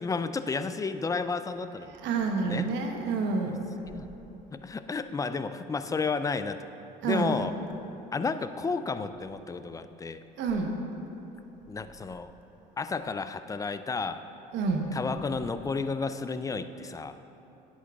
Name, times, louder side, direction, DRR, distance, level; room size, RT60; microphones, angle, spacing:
voice 1, 0.0-1.9 2.4-2.7 3.9-4.1 4.5-6.7 7.0-7.5 8.1-10.2 11.7-12.3 12.8-14.2 14.9-17.2, left 4 dB, 15° left, 11 dB, 0.3 m, -32 dB
voice 2, 1.9-3.8 7.0-7.4 10.4-10.9 14.5-14.9, right 4 dB, 65° right, 3 dB, 1.0 m, -29 dB
10.0 x 8.4 x 2.4 m, 3.0 s
supercardioid pair, 75°, 20 cm